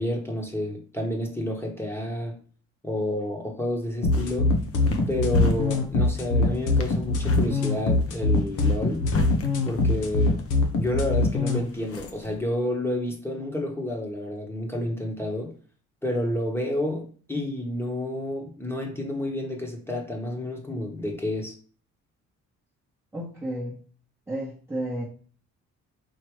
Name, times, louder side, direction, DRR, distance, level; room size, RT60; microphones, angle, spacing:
voice 1, 0.0-2.4 2.8-4.5 5.1-9.1 9.6-10.4 10.8-15.5 16.0-21.5, left 1 dB, 10° left, 1 dB, 1.2 m, -30 dB
sound 1, 3.9-12.4, left 2 dB, 50° left, 0.8 m, -34 dB
sound 2, 4.0-11.6, left 3 dB, 80° left, 0.9 m, -23 dB
voice 2, 23.1-23.8 24.3-25.0, right 1 dB, 10° right, -5 dB, 1.0 m, -32 dB
4.7 x 2.9 x 3.1 m, 0.40 s
cardioid pair, 90°, 30 cm